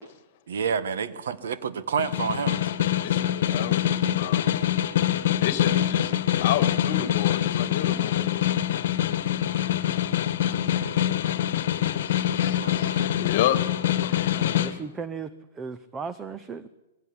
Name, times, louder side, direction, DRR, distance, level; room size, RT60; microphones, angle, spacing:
voice 1, 0.5-2.7 10.1-10.3 12.6-13.0, right 6 dB, 75° right, 13 dB, 1.5 m, -29 dB
Snare drum, 2.0-14.7, left 11 dB, 55° left, 1.5 m, -25 dB
voice 2, 3.0-4.6 5.4-8.5 9.8-9.9 11.2-11.4 11.7-13.6 14.0-14.4, left 11 dB, 40° left, 11 dB, 2.2 m, -31 dB
voice 3, 14.3-15.3 15.5-16.7, right 5 dB, 10° right, 12 dB, 0.6 m, -36 dB
21.0 x 16.0 x 9.8 m, 1.0 s
hypercardioid pair, 165°, 0 cm